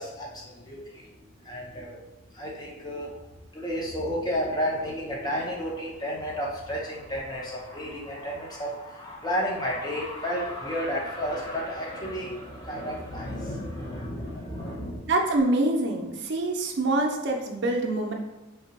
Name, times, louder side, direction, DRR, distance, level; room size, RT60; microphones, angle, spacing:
voice 1, 0.0-2.0 2.3-3.2 3.5-15.0, equal, 20° left, -3 dB, 0.6 m, -32 dB
voice 2, 15.0-18.1, right 2 dB, 60° right, 2 dB, 0.5 m, -25 dB
2.7 x 2.2 x 3.9 m, 1.1 s
head